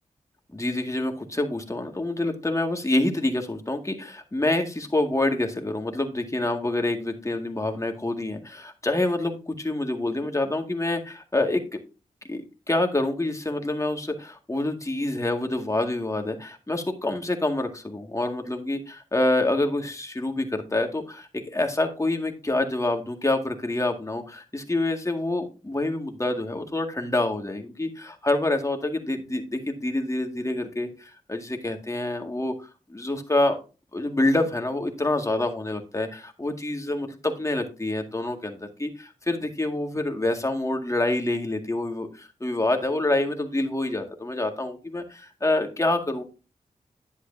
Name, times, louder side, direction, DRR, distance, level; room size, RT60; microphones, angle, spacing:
voice 1, 0.5-11.8 12.3-33.6 33.9-46.2, left 2 dB, 25° left, 4 dB, 1.9 m, -27 dB
10.5 x 8.1 x 2.7 m, 0.33 s
cardioid pair, 55°, 14 cm